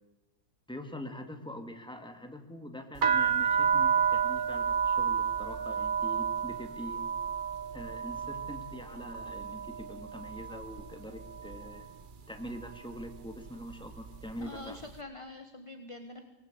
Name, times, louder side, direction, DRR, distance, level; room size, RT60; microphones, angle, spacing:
voice 1, 0.7-7.1 7.7-11.9 12.3-14.8, equal, 5° left, 5 dB, 2.0 m, -44 dB
sound 1, 3.0-10.9 11.2-11.8 12.4-12.7 13.0-14.5, right 7 dB, 45° right, 0.7 m, -30 dB
voice 2, 14.4-16.2, left 2 dB, 20° left, 6 dB, 1.2 m, -45 dB
23.5 x 19.0 x 8.2 m, 1.0 s
omnidirectional pair, 1.9 m